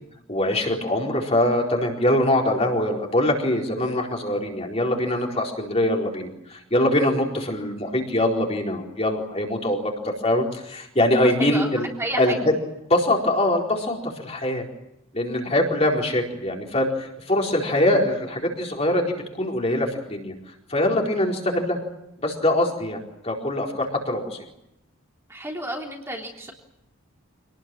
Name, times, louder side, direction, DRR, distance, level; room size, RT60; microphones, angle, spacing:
voice 1, 0.3-11.9 12.2-12.4 12.9-14.6 15.1-19.0 19.4-20.3 20.7-21.8 22.2-24.4, left 1 dB, 30° left, 0 dB, 4.4 m, -23 dB
voice 2, 11.2-11.7 12.0-12.4 25.3-26.5, right 1 dB, 10° right, -1 dB, 3.5 m, -32 dB
27.0 x 19.5 x 9.1 m, 0.85 s
head